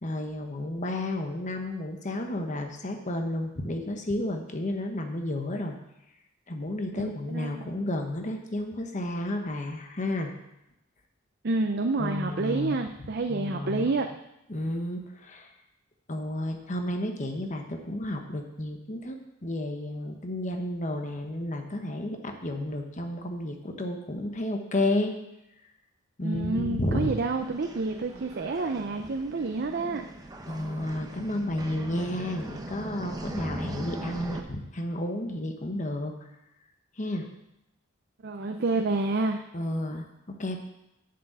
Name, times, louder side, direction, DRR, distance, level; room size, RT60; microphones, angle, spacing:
voice 1, 0.0-5.7 6.5-10.3 12.0-12.8 13.3-13.9 14.5-15.5 16.1-25.1 26.2-27.1 30.5-36.1 37.0-37.3 39.5-40.6, left 1 dB, 35° left, 4 dB, 1.1 m, -32 dB
voice 2, 7.0-7.8 11.4-14.2 26.2-30.1 38.2-39.4, right 3 dB, 50° right, 5 dB, 0.6 m, -29 dB
sound 1, 26.9-34.4, right 1 dB, 20° right, 0.8 m, -40 dB
7.6 x 6.8 x 7.9 m, 0.87 s
head